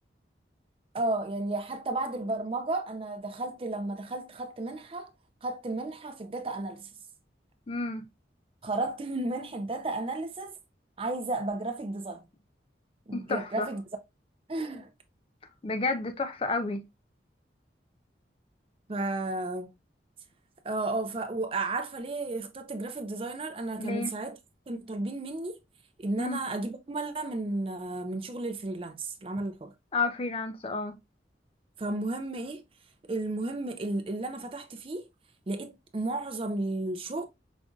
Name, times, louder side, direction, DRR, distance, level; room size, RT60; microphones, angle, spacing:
voice 1, 0.9-5.1 5.4-6.9 8.6-10.5 11.0-12.2 13.1-13.8 14.5-14.9 18.9-19.7 20.6-24.4 24.7-25.6 26.0-29.7 31.8-32.6 33.1-35.1 35.5-37.3, right 2 dB, 30° right, 0.4 m, -33 dB
voice 2, 7.7-8.1 13.1-13.7 15.6-16.8 23.8-24.1 26.2-26.4 29.9-31.0, left 3 dB, 30° left, 0.4 m, -31 dB
5.0 x 2.5 x 2.3 m
head